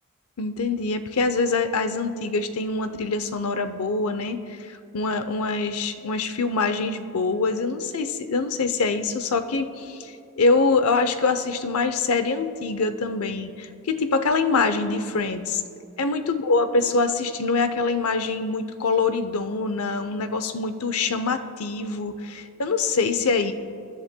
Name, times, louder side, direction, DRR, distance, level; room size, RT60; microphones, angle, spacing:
voice 1, 0.4-15.6 16.0-23.5, left 4 dB, 90° left, 9 dB, 0.7 m, -24 dB
23.0 x 11.0 x 2.2 m, 2.5 s
head